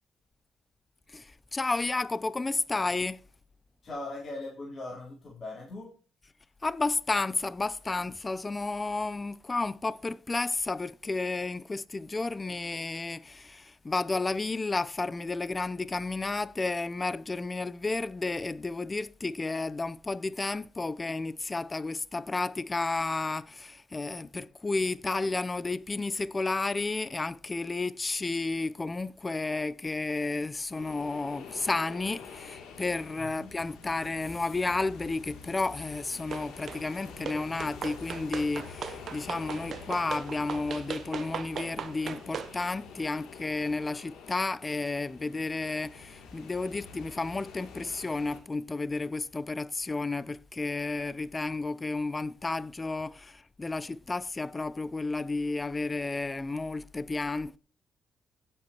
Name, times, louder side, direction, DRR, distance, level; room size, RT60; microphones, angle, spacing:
voice 1, 1.1-3.2 6.6-57.6, left 3 dB, 25° left, 0.6 m, -32 dB
voice 2, 3.8-6.0 33.1-33.5, left 2 dB, 40° left, 3.8 m, -40 dB
sound 1, 30.7-48.4, left 5 dB, 85° left, 2.7 m, -47 dB
sound 2, 36.3-36.8 37.3-42.5, right 7 dB, 60° right, 0.9 m, -38 dB
16.5 x 7.8 x 3.0 m
cardioid pair, 90°, 0 cm